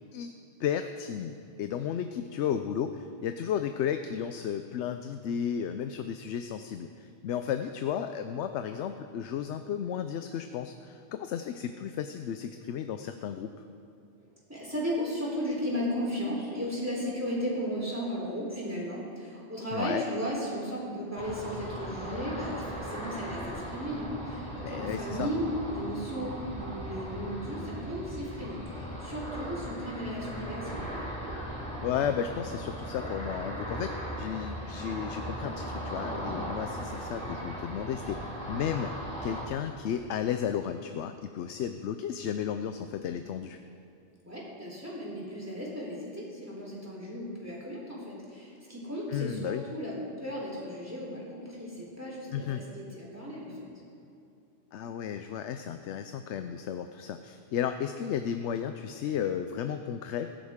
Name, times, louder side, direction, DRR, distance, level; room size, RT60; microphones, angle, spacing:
voice 1, 0.6-13.5 19.7-20.0 24.6-25.3 31.8-38.9 39.2-43.6 49.1-49.6 52.3-52.6 54.7-60.3, left 8 dB, 85° left, 8 dB, 0.9 m, -33 dB
voice 2, 14.5-30.9 44.3-53.6, equal, 15° right, -5 dB, 3.5 m, -35 dB
Ocean, 21.2-39.4, equal, 5° left, 3.7 m, -38 dB
16.5 x 14.0 x 3.6 m, 2.7 s
omnidirectional pair, 1.2 m